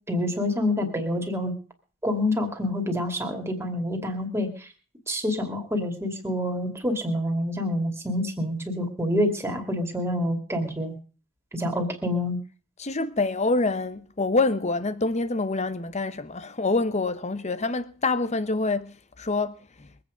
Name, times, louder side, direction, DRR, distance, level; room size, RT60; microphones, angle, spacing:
voice 1, 0.1-1.5 2.0-4.7 5.1-10.9 11.5-12.4, left 1 dB, 10° right, 2.6 m, -27 dB
voice 2, 12.8-19.9, left 3 dB, 30° left, 0.9 m, -26 dB
23.0 x 8.8 x 5.2 m
head